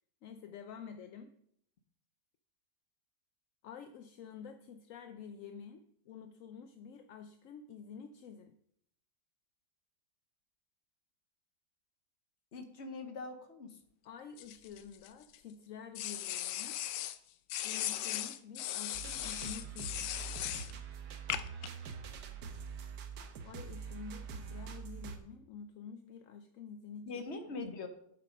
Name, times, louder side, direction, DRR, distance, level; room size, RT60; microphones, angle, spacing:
voice 1, 0.2-1.3 3.6-8.6 14.0-16.8 17.6-20.1 23.4-27.1, left 6 dB, 65° left, 8 dB, 0.9 m, -49 dB
voice 2, 12.5-13.8 27.1-27.9, left 3 dB, 45° left, 7 dB, 1.2 m, -42 dB
sound 1, 14.4-15.4 16.0-17.2 17.5-20.7 21.3-21.7, left 12 dB, 80° left, 1.2 m, -38 dB
sound 2, 18.9-25.2, right 6 dB, 75° right, 1.5 m, -44 dB
8.2 x 7.6 x 5.3 m, 0.71 s
omnidirectional pair, 1.8 m